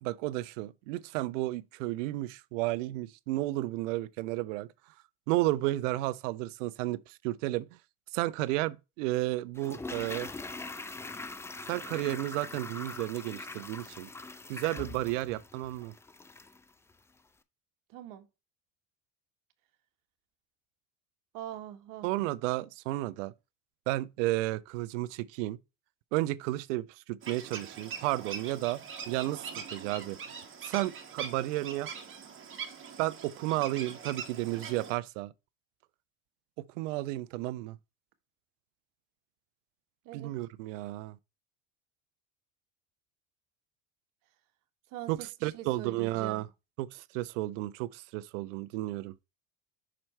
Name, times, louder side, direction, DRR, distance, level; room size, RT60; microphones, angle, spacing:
voice 1, 0.0-4.7 5.3-7.7 8.1-10.3 11.7-14.1 14.5-15.9 22.0-23.3 23.9-25.6 26.1-28.8 29.1-30.2 30.6-31.9 33.0-35.3 36.6-37.8 40.1-41.2 45.1-46.5 46.8-49.1, right 17 dB, 75° right, 0.6 m, -32 dB
Toilet flush, 9.6-16.6 16.9-17.0, left 3 dB, 5° left, 0.4 m, -42 dB
voice 2, 17.9-18.3 21.3-22.1 40.0-40.3 44.9-46.4, right 12 dB, 55° right, 1.3 m, -43 dB
sound 1, 27.2-35.0, right 6 dB, 30° right, 1.7 m, -43 dB
6.1 x 4.4 x 4.3 m
hypercardioid pair, 90°, 38 cm